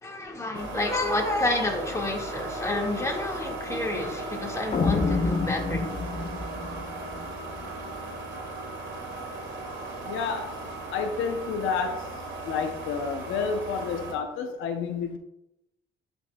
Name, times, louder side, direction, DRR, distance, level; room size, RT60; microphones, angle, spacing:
voice 1, 0.0-6.0, left 2 dB, 15° left, 0 dB, 1.8 m, -29 dB
sound 1, 0.5-14.1, right 2 dB, 70° right, 2.5 m, -37 dB
sound 2, 4.7-7.8, left 4 dB, 35° left, 0.7 m, -28 dB
voice 2, 10.1-10.5 10.9-12.0 12.5-15.2, left 5 dB, 90° left, 5 dB, 0.7 m, -29 dB
11.0 x 5.4 x 2.3 m, 0.86 s
cardioid pair, 90°, 20 cm